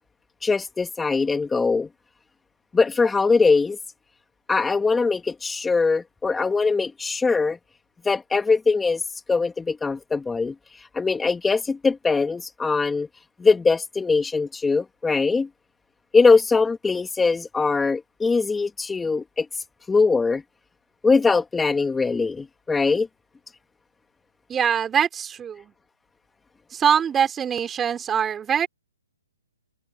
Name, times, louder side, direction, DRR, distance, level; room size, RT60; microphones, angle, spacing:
voice 1, 0.4-1.9 2.7-3.8 4.5-7.6 8.0-13.1 13.4-15.5 16.1-20.4 21.0-23.1, left 4 dB, 5° left, 2.7 m, -22 dB
voice 2, 24.5-25.7 26.7-28.7, right 8 dB, 15° right, 4.8 m, -23 dB
hypercardioid pair, 140°, 0 cm